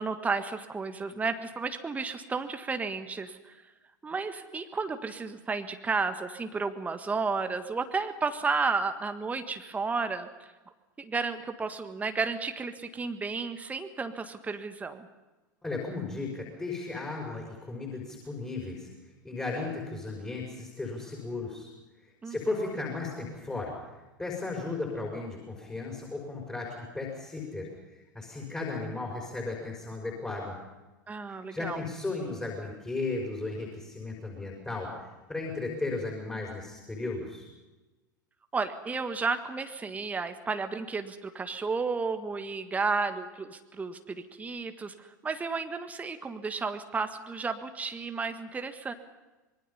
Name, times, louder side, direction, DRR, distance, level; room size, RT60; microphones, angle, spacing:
voice 1, 0.0-3.5 4.0-10.5 11.0-15.1 22.2-22.6 31.1-31.8 38.5-48.9, right 4 dB, 15° right, 8 dB, 1.6 m, -32 dB
voice 2, 15.6-18.9 19.2-21.7 22.2-23.8 24.2-27.7 28.1-30.6 31.3-35.0 35.3-37.5, left 3 dB, 10° left, -1 dB, 5.7 m, -35 dB
25.5 x 23.0 x 5.6 m, 1.1 s
figure-of-eight pair, 85°, 10 cm